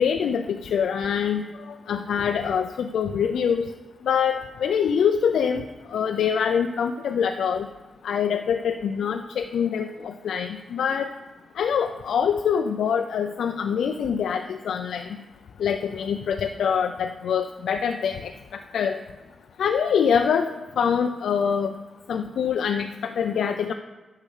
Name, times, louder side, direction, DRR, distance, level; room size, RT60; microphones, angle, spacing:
voice 1, 0.0-3.7 4.0-5.6 5.9-7.7 8.0-11.1 11.6-15.1 15.6-19.0 19.6-21.7 22.1-23.7, left 7 dB, 85° left, 6 dB, 0.5 m, -25 dB
8.5 x 6.5 x 6.5 m, 1.2 s
wide cardioid pair, 125°, 0 cm